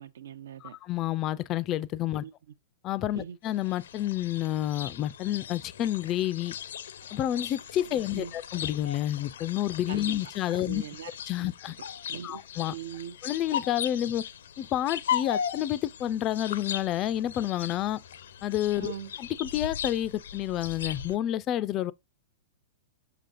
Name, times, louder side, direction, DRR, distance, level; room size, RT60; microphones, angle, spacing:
voice 1, 0.0-0.8 2.2-2.3 3.1-3.4 7.8-8.3 9.9-10.1 10.5-11.1 11.4-11.5 12.1-12.4 12.7-13.2 18.8-19.1, right 8 dB, 85° right, 0.7 m, -41 dB
voice 2, 0.6-2.2 2.8-6.6 7.1-10.8 11.3-11.8 12.2-12.8 13.2-14.2 14.6-18.0 18.4-18.9 19.2-21.9, left 12 dB, 20° left, 0.3 m, -29 dB
sound 1, 3.5-21.2, left 9 dB, 75° left, 0.5 m, -38 dB
6.7 x 6.1 x 2.4 m
supercardioid pair, 175°, 0 cm